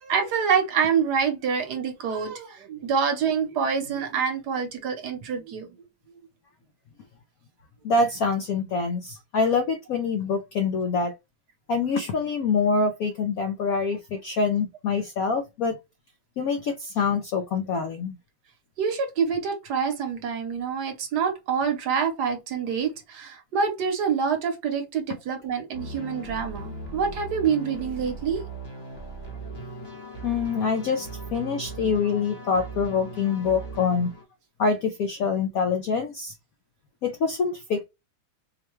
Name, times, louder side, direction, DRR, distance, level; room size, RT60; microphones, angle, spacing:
voice 1, 0.0-5.8 18.8-28.4, right 6 dB, 65° right, 1.3 m, -26 dB
voice 2, 7.8-11.1 11.7-15.8 16.4-18.2 30.2-34.1 34.6-36.3 37.0-37.8, left 4 dB, 80° left, 0.8 m, -25 dB
sound 1, 25.7-34.2, right 2 dB, 20° left, 0.7 m, -38 dB
4.5 x 2.2 x 3.0 m
omnidirectional pair, 2.2 m